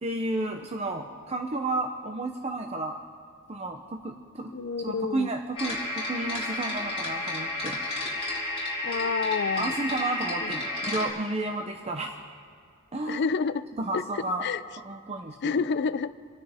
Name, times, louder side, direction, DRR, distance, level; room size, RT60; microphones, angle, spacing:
voice 1, 0.0-3.0 3.5-4.5 4.8-7.8 9.6-12.2 12.9-13.2 13.8-14.4 14.8-15.6, right 2 dB, 30° right, 3 dB, 0.7 m, -32 dB
voice 2, 4.5-5.3 8.8-9.7 10.4-10.5 13.1-13.7 13.9-14.6 15.4-16.1, left 5 dB, 50° left, 14 dB, 0.4 m, -29 dB
sound 1, 5.6-11.1, left 1 dB, 25° left, 2.9 m, -32 dB
28.5 x 9.9 x 3.5 m, 2.3 s
head